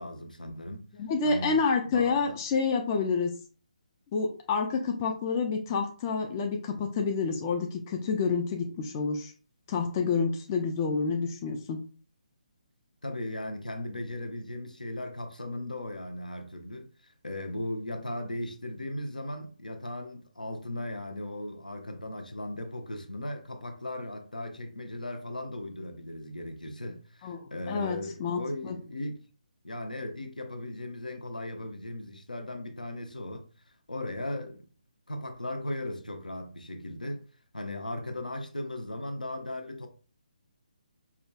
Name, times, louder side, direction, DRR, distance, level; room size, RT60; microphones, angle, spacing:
voice 1, 0.0-0.9 1.2-1.6 1.9-2.4 13.0-29.3 29.6-33.5 33.9-34.7 35.1-37.3 37.5-39.9, left 1 dB, 75° left, 0.7 m, -37 dB
voice 2, 1.0-3.3 4.1-9.3 9.7-11.8 27.2-28.8, left 5 dB, 25° left, 0.4 m, -28 dB
4.8 x 2.2 x 2.2 m
figure-of-eight pair, 140°, 4 cm